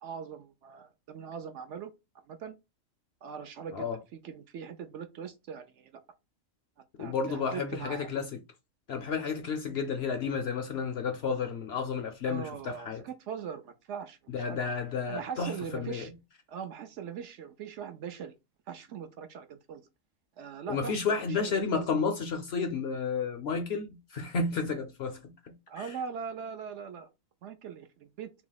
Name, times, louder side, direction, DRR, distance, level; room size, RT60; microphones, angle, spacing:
voice 1, 0.0-1.9 2.3-2.5 3.2-6.0 7.0-8.1 12.3-14.6 15.1-16.1 16.5-18.3 18.7-19.8 20.4-21.0 21.3-21.9 25.7-27.1 27.4-28.3, right 7 dB, 65° right, 0.8 m, -41 dB
voice 2, 6.9-8.3 8.9-13.0 14.3-16.1 20.7-25.9, left 5 dB, 60° left, 0.7 m, -32 dB
3.0 x 2.7 x 3.9 m
omnidirectional pair, 1.4 m